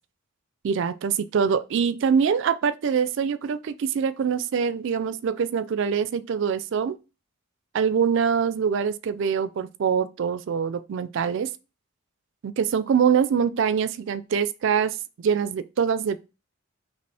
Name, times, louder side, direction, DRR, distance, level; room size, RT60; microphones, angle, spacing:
voice 1, 0.6-7.0 7.7-11.5 12.4-16.2, right 7 dB, 60° right, 0.3 m, -24 dB
4.2 x 2.9 x 3.3 m
head